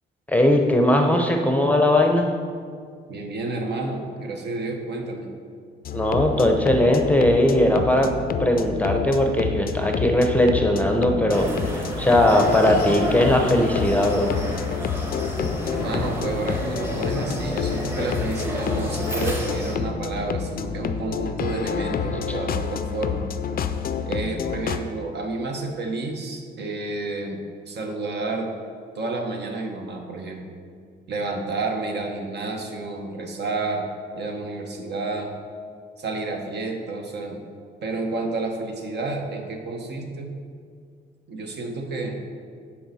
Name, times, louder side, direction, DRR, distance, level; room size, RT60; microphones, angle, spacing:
voice 1, 0.3-2.3 5.9-8.1 8.4-14.3, left 1 dB, 5° left, 3 dB, 0.7 m, -19 dB
voice 2, 3.1-5.3 15.6-23.3 24.1-28.5 28.9-30.6 31.1-33.8 34.1-35.3 36.0-37.5 37.8-40.3 41.3-42.2, right 3 dB, 60° right, 2 dB, 1.0 m, -30 dB
sound 1, 5.8-24.8, left 7 dB, 50° left, 0.4 m, -29 dB
sound 2, 11.3-19.8, equal, 10° right, 1.0 m, -31 dB
10.0 x 4.3 x 4.1 m, 2.2 s
cardioid pair, 90°, 20 cm